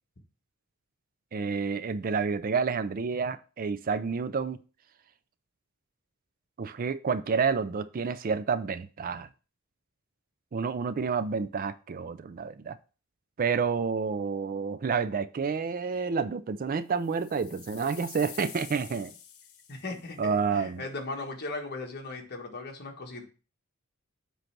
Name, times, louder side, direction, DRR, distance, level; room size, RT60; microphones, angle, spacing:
voice 1, 1.3-4.6 6.6-9.3 10.5-12.8 13.4-19.1 20.2-20.8, right 5 dB, 40° right, 0.4 m, -29 dB
sound 1, 17.0-20.2, left 8 dB, 75° left, 1.1 m, -47 dB
voice 2, 19.7-23.3, left 3 dB, 50° left, 1.4 m, -38 dB
7.8 x 3.2 x 5.8 m
head